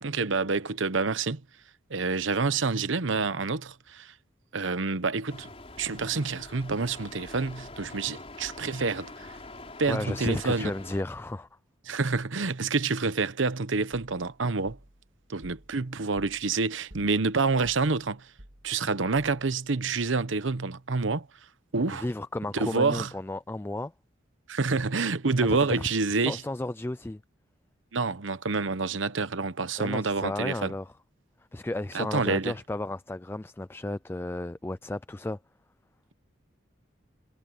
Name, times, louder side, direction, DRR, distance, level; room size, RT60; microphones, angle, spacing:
voice 1, 0.0-1.4 1.9-4.1 4.5-5.5 5.8-9.3 9.8-10.7 11.9-14.8 15.3-18.3 18.6-21.3 21.7-22.1 22.5-23.1 24.5-26.4 27.9-30.7 31.9-32.5, right 4 dB, 85° right, 1.0 m, -28 dB
sound 1, 5.3-11.0, left 2 dB, 30° left, 4.6 m, -45 dB
voice 2, 9.9-11.5 21.9-23.9 25.5-27.2 29.8-30.9 31.5-35.4, left 2 dB, 10° left, 0.3 m, -33 dB
sound 2, 14.7-19.7, right 1 dB, 65° right, 2.0 m, -53 dB
head